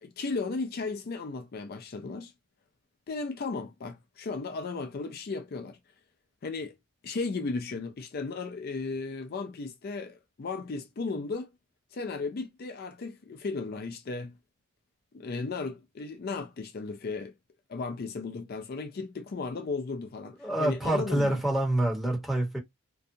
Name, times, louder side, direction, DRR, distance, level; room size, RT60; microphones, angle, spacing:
voice 1, 0.0-2.3 3.1-5.8 6.4-6.8 7.0-11.5 11.9-14.3 15.1-17.3 17.7-21.4, left 4 dB, 45° left, 0.4 m, -35 dB
voice 2, 20.4-22.6, right 1 dB, ahead, 1.1 m, -27 dB
2.6 x 2.3 x 2.6 m
head